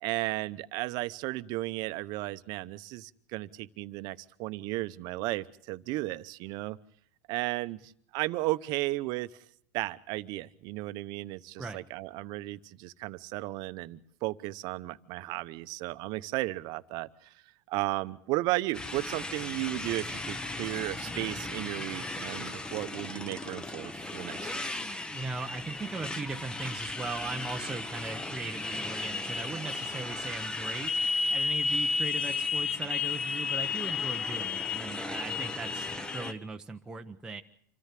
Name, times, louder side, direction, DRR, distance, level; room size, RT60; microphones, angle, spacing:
voice 1, 0.0-6.8 7.3-9.3 9.7-17.3 17.7-24.7, right 19 dB, 50° right, 15 dB, 0.9 m, -34 dB
Motorcycle, 18.7-36.3, left 3 dB, 10° left, 1.1 m, -34 dB
voice 2, 25.1-30.9 31.3-37.4, right 3 dB, 10° right, 3 dB, 0.9 m, -39 dB
26.5 x 13.5 x 7.5 m, 0.64 s
supercardioid pair, 135°, 9 cm